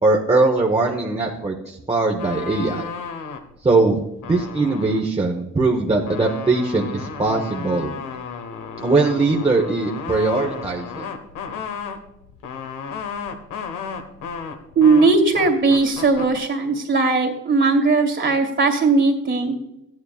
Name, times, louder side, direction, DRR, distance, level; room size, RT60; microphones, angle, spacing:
voice 1, 0.0-2.9 3.6-7.9 8.8-11.1, right 3 dB, 20° right, -2 dB, 1.1 m, -20 dB
sound 1, 2.2-3.5 4.0-5.1 5.9-16.4, left 6 dB, 85° left, 1.2 m, -33 dB
voice 2, 14.8-19.5, right 3 dB, 40° right, 4 dB, 2.2 m, -18 dB
14.5 x 9.5 x 2.4 m, 0.89 s
cardioid pair, 90°, 30 cm